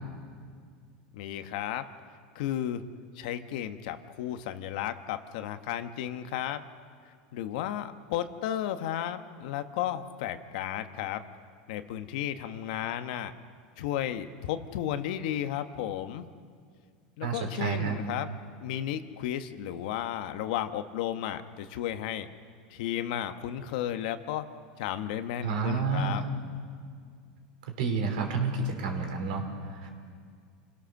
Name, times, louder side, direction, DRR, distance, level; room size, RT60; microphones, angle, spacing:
voice 1, 1.1-1.9 2.3-2.9 3.1-6.6 7.3-11.2 11.7-13.3 13.8-16.3 17.2-18.3 18.6-22.3 22.7-24.4 24.8-26.2, left 11 dB, 70° left, 9 dB, 1.2 m, -33 dB
voice 2, 17.2-18.0 25.4-26.3 27.7-29.9, right 4 dB, 80° right, 3 dB, 4.1 m, -30 dB
28.0 x 17.0 x 6.6 m, 2.1 s
supercardioid pair, 135°, 4 cm